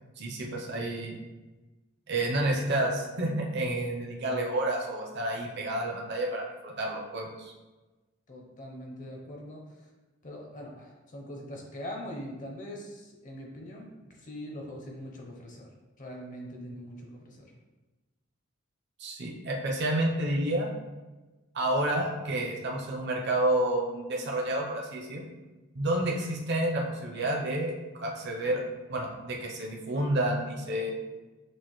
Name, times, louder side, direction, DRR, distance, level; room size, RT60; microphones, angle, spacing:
voice 1, 0.2-1.2 2.1-7.5 19.0-20.7 21.5-25.2 25.7-28.6 28.9-30.9, right 1 dB, 55° right, -1 dB, 0.7 m, -30 dB
voice 2, 8.3-9.9 10.2-15.7 16.0-17.5, equal, 40° left, 0 dB, 0.7 m, -42 dB
6.2 x 2.5 x 3.1 m, 1.2 s
head